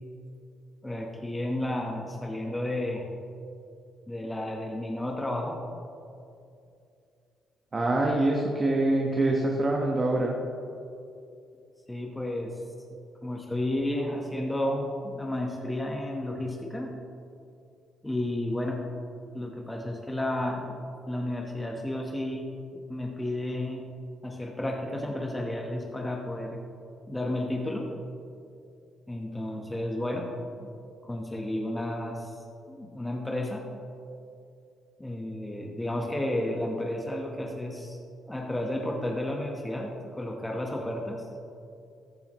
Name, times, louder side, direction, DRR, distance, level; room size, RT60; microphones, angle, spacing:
voice 1, 0.8-3.0 4.1-5.6 11.9-12.6 13.2-16.9 18.0-18.8 19.3-20.7 21.1-23.9 24.2-26.6 27.1-27.9 29.1-30.7 31.0-33.7 35.0-41.3, left 1 dB, 10° left, 0 dB, 1.2 m, -32 dB
voice 2, 7.7-10.4, right 2 dB, 35° right, 0 dB, 1.3 m, -25 dB
14.5 x 10.5 x 3.1 m, 2.6 s
cardioid pair, 90°, 0 cm